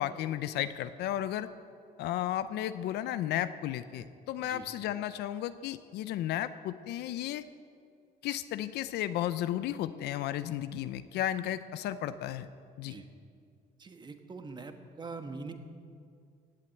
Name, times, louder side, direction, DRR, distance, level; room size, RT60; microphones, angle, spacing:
voice 1, 0.0-1.5 2.0-7.4 8.2-12.5 12.8-12.9, left 12 dB, 80° left, 12 dB, 0.6 m, -34 dB
voice 2, 13.8-15.5, right 4 dB, 25° right, 7 dB, 1.3 m, -43 dB
16.5 x 7.7 x 8.8 m, 2.2 s
cardioid pair, 110°, 17 cm